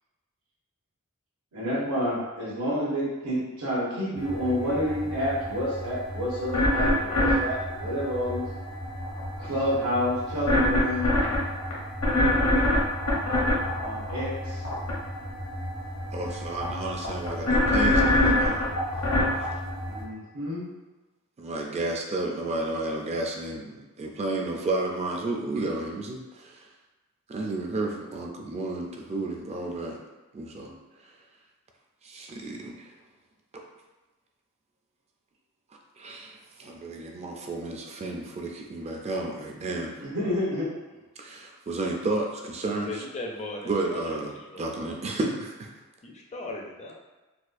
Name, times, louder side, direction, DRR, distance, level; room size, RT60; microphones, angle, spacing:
voice 1, 1.5-8.4 9.4-11.3 13.8-14.6 19.9-20.7 40.0-40.7, equal, 80° right, -8 dB, 1.1 m, -29 dB
sound 1, 4.2-20.0, left 1 dB, 75° left, 1.0 m, -27 dB
voice 2, 16.1-18.7 21.4-26.7 27.3-30.0 30.3-30.7 32.0-32.9 36.0-39.9 41.2-42.9 43.6-44.3 44.6-45.7, right 2 dB, 30° right, 1 dB, 0.4 m, -32 dB
voice 3, 42.9-44.9 46.0-46.9, left 2 dB, 30° left, 0 dB, 0.4 m, -38 dB
4.1 x 2.3 x 2.5 m, 1.2 s
head